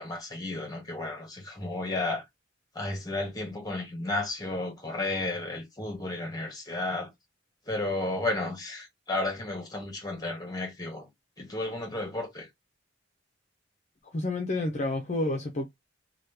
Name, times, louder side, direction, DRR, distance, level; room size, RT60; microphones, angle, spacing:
voice 1, 0.0-2.2 2.7-7.1 7.7-11.1 11.4-12.5, left 2 dB, 20° left, 1.0 m, -33 dB
voice 2, 14.0-15.7, left 2 dB, 35° left, 0.5 m, -30 dB
2.9 x 2.3 x 3.3 m
head